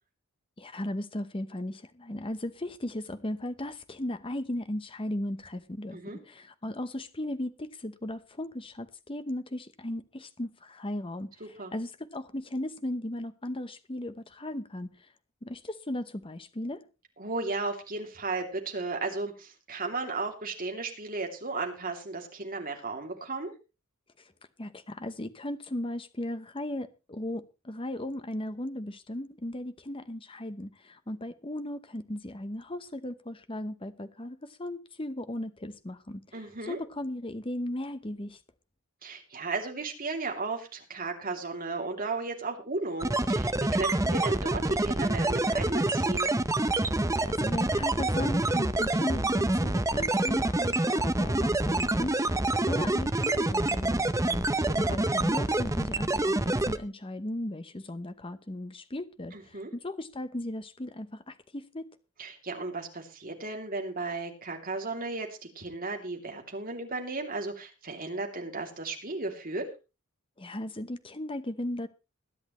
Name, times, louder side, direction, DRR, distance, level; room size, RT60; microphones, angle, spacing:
voice 1, 0.6-6.0 6.2-11.3 11.7-14.9 15.4-16.8 24.6-36.2 36.6-38.4 46.9-54.5 54.8-61.8 70.4-71.9, left 1 dB, 25° left, 0.9 m, -36 dB
voice 2, 11.4-11.7 17.2-23.5 36.3-36.8 39.0-46.3 54.6-55.0 59.3-59.7 62.2-69.7, right 3 dB, 40° right, 2.9 m, -35 dB
sound 1, 43.0-56.8, right 2 dB, 15° right, 0.7 m, -27 dB
21.0 x 10.5 x 3.1 m
head